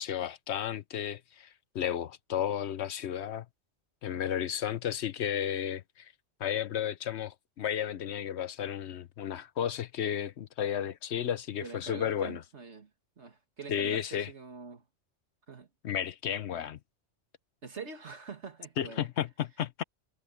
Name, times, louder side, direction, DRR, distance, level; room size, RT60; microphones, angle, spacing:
voice 1, 0.0-1.5 1.7-3.5 4.0-6.1 6.4-12.4 13.7-14.3 15.8-16.8 18.8-19.8, left 9 dB, 70° left, 1.0 m, -33 dB
voice 2, 11.6-12.9 13.2-14.8 15.5-15.7 17.6-19.1, right 4 dB, 70° right, 2.5 m, -44 dB
omnidirectional pair, 1.2 m